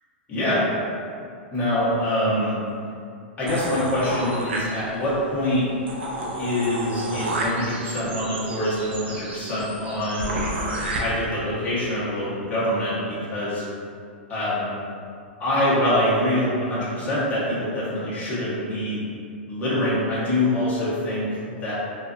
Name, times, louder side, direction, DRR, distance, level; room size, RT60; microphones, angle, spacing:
voice 1, 0.3-0.7 1.5-2.5 3.4-5.7 6.4-10.4 11.0-13.6 14.3-14.7 15.4-19.0 19.5-21.3 21.6-21.7, left 1 dB, 25° left, -10 dB, 1.1 m, -24 dB
sound 1, 3.5-5.1 5.5-5.6 5.9-11.0, right 1 dB, 75° right, 0.5 m, -31 dB
2.5 x 2.4 x 2.5 m, 2.4 s
hypercardioid pair, 115°, 6 cm